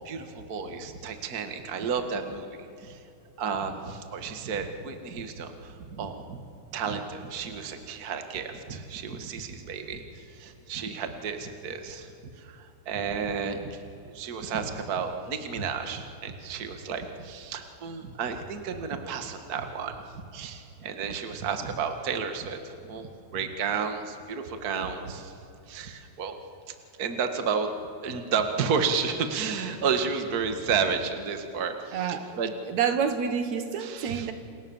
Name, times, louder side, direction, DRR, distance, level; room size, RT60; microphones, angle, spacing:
voice 1, 0.1-3.0 3.4-6.4 6.7-25.3 25.7-26.3 27.0-27.7 28.0-32.5 33.8-34.3, right 6 dB, 35° right, 6 dB, 1.9 m, -32 dB
voice 2, 31.9-32.4 32.6-34.3, right 7 dB, 70° right, 8 dB, 2.6 m, -28 dB
28.5 x 28.5 x 7.3 m, 2.7 s
omnidirectional pair, 3.5 m